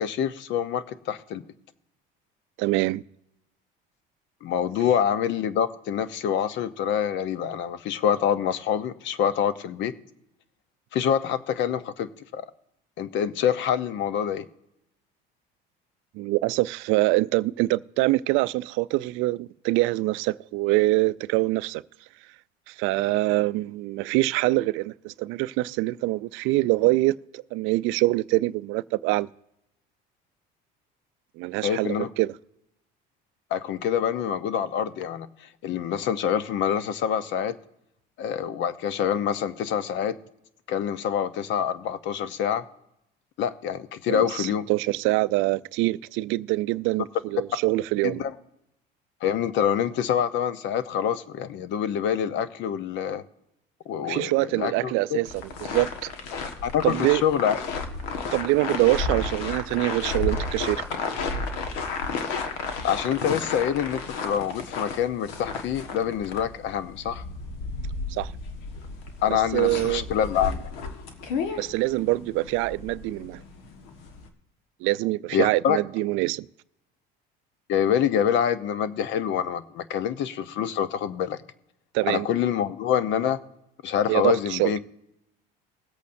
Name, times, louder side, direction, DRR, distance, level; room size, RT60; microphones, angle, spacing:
voice 1, 0.0-1.4 4.4-9.9 10.9-12.4 13.0-14.5 31.6-32.1 33.5-37.6 38.2-40.2 40.7-42.6 43.4-44.7 48.0-48.3 49.2-53.2 53.9-55.2 56.6-57.6 62.8-67.2 69.2-70.6 75.3-75.8 77.7-81.4 82.1-83.4 83.8-84.8, left 9 dB, 65° left, 0.8 m, -26 dB
voice 2, 2.6-3.0 16.1-21.8 22.7-29.3 31.4-32.3 44.1-48.2 54.0-56.1 56.8-57.2 58.3-60.8 68.1-68.3 69.3-70.1 71.6-73.4 74.8-76.5 81.9-82.3 84.1-84.7, right 19 dB, 75° right, 0.4 m, -24 dB
sound 1, 55.2-74.3, left 4 dB, 90° left, 1.4 m, -33 dB
20.5 x 8.4 x 2.6 m
supercardioid pair, 100°, 21 cm